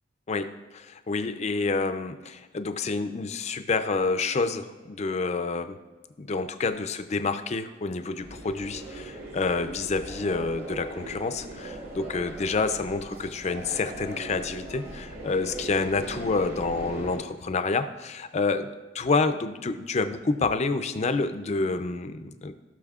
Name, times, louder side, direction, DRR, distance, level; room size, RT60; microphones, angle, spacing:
voice 1, 0.3-5.8 6.2-18.7 18.9-22.5, left 3 dB, 35° left, 10 dB, 0.4 m, -28 dB
sound 1, 8.2-17.2, right 2 dB, 55° right, 2.4 m, -39 dB
15.5 x 6.2 x 2.4 m, 1.3 s
head